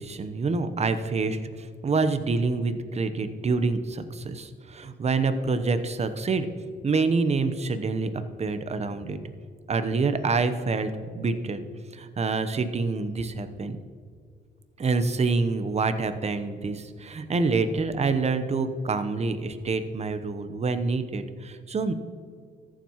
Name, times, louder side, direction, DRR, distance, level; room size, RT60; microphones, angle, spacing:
voice 1, 0.0-6.5 6.8-8.1 8.4-9.2 9.7-11.6 11.9-13.8 14.8-21.9, right 4 dB, 35° right, 10 dB, 0.8 m, -27 dB
14.0 x 7.4 x 3.0 m, 2.1 s
cardioid pair, 90°, 20 cm